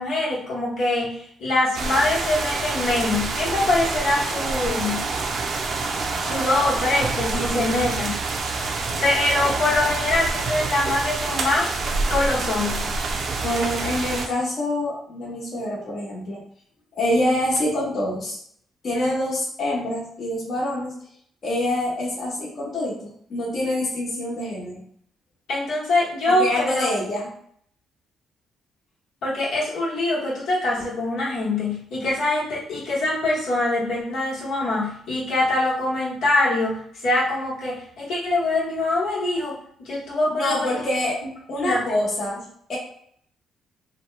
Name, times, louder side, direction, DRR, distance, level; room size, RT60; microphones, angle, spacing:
voice 1, 0.0-5.1 6.2-8.1 9.0-11.7 12.1-13.0 25.5-26.9 29.2-40.7 41.6-41.8, left 2 dB, 80° left, -5 dB, 1.1 m, -24 dB
sound 1, 1.7-14.3, right 3 dB, 55° right, 0.5 m, -27 dB
voice 2, 7.3-7.7 13.4-16.4 17.0-18.4 18.8-20.9 21.4-24.8 26.3-27.3 40.4-41.2 41.5-42.8, left 1 dB, 50° left, -4 dB, 1.0 m, -26 dB
2.9 x 2.1 x 3.2 m, 0.65 s
cardioid pair, 90°, 0 cm